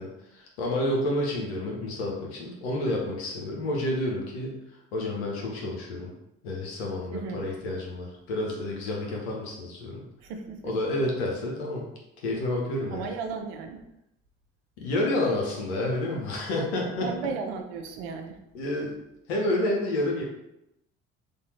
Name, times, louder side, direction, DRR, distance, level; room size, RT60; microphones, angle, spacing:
voice 1, 0.0-6.1 6.4-10.1 10.7-11.9 12.2-13.1 14.8-17.1 18.5-18.9 19.3-20.2, left 1 dB, 85° left, -1 dB, 1.0 m, -29 dB
voice 2, 10.2-10.8 12.9-13.8 17.0-18.4, right 5 dB, 80° right, 5 dB, 0.6 m, -35 dB
3.5 x 2.7 x 4.3 m, 0.86 s
hypercardioid pair, 60°, 31 cm